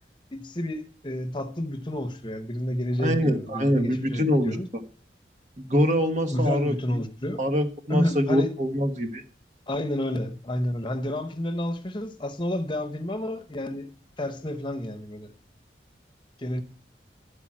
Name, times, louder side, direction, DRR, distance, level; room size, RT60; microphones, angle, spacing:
voice 1, 0.3-4.7 6.3-7.4 7.9-8.5 9.7-13.9 14.2-15.3 16.4-16.6, left 1 dB, 25° left, 0.9 m, -30 dB
voice 2, 3.0-4.6 5.6-7.0 7.4-9.2, equal, 40° right, 1.3 m, -24 dB
12.5 x 5.0 x 8.7 m
head